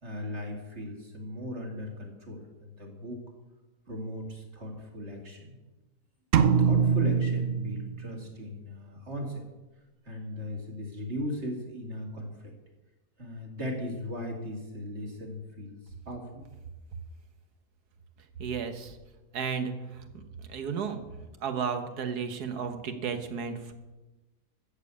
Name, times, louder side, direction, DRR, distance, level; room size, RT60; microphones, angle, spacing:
voice 1, 0.0-3.2 3.9-5.6 6.6-9.5 10.0-12.5 13.2-16.4, equal, 45° right, 1 dB, 2.8 m, -38 dB
sound 1, 6.3-8.3, right 6 dB, 60° right, 0.9 m, -24 dB
voice 2, 18.4-19.0 19.3-20.2 20.5-21.0 21.4-23.7, right 6 dB, 75° right, 8 dB, 1.7 m, -33 dB
13.5 x 7.3 x 8.4 m, 1.1 s
omnidirectional pair, 1.7 m